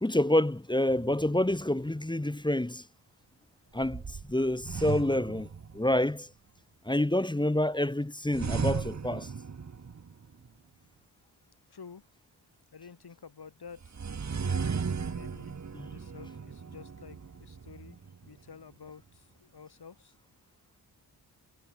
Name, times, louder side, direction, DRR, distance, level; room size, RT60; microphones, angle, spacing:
voice 1, 0.0-2.8 3.7-5.5 5.7-6.3 6.8-9.3 15.7-15.9, left 1 dB, 10° left, 1.3 m, -28 dB
sound 1, 0.9-1.9 3.8-6.1 8.3-10.5 13.8-18.5, right 5 dB, 40° right, 1.4 m, -36 dB
voice 2, 11.7-12.0 12.7-14.0 14.3-14.8 15.1-15.6 15.9-20.2, left 6 dB, 60° left, 5.2 m, -50 dB
wide cardioid pair, 100°, 44 cm